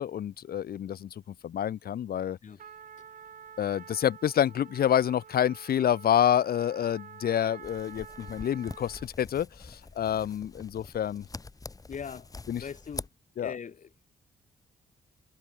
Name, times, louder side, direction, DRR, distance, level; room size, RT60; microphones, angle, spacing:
voice 1, 0.0-2.4 3.6-11.3 12.5-12.6 13.4-13.5, left 10 dB, 70° left, 2.0 m, -28 dB
Trumpet, 2.6-9.2, right 7 dB, 55° right, 2.9 m, -49 dB
sound 1, 7.6-13.1, left 3 dB, 20° left, 1.4 m, -44 dB
voice 2, 11.9-13.1 13.4-14.1, left 7 dB, 50° left, 6.5 m, -41 dB
cardioid pair, 110°, 16 cm